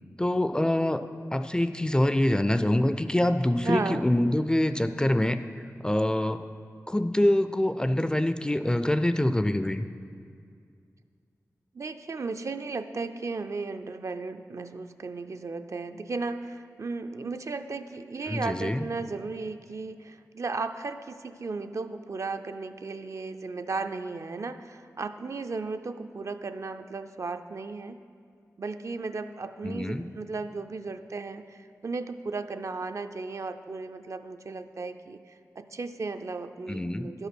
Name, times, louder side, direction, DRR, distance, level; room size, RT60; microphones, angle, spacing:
voice 1, 0.2-1.0 1.3-5.4 5.8-6.5 6.9-9.9 18.3-18.9 29.6-30.1 36.7-37.1, left 1 dB, 15° left, 10 dB, 0.4 m, -25 dB
voice 2, 3.6-4.0 11.7-28.0 28.6-37.3, right 3 dB, 55° right, 8 dB, 0.4 m, -35 dB
11.0 x 5.6 x 6.0 m, 2.3 s
wide cardioid pair, 60°, 6 cm